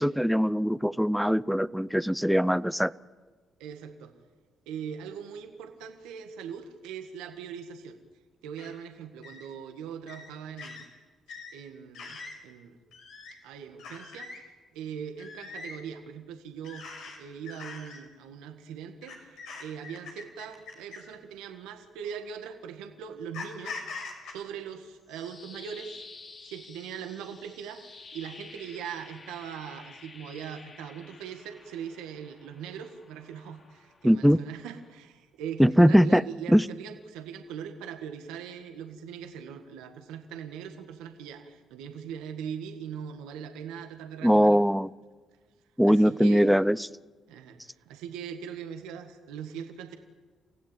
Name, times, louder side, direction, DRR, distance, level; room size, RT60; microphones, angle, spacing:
voice 1, 0.0-2.9 34.0-34.4 35.6-36.2 36.5-36.6 44.2-44.9 45.8-46.8, equal, ahead, 18 dB, 0.7 m, -21 dB
voice 2, 3.6-4.1 4.7-8.0 8.4-10.9 11.5-12.8 13.4-14.5 14.7-16.9 17.2-23.8 24.3-26.1 26.4-44.6 45.9-46.6 47.3-50.0, right 8 dB, 85° right, 5 dB, 1.8 m, -40 dB
sound 1, 8.6-8.7 9.2-9.4 10.1-10.3 10.6-10.8 11.3-11.5 11.9-12.4 12.9-13.3 13.8-14.4 15.2-15.8 16.6-17.2 17.4-18.0 19.0-21.1 22.0-22.2 23.3-24.3, left 4 dB, 80° left, 6.3 m, -42 dB
sound 2, 24.8-34.9, left 4 dB, 50° left, 3.7 m, -51 dB
29.5 x 16.0 x 9.2 m, 1.4 s
supercardioid pair, 60°, 0 cm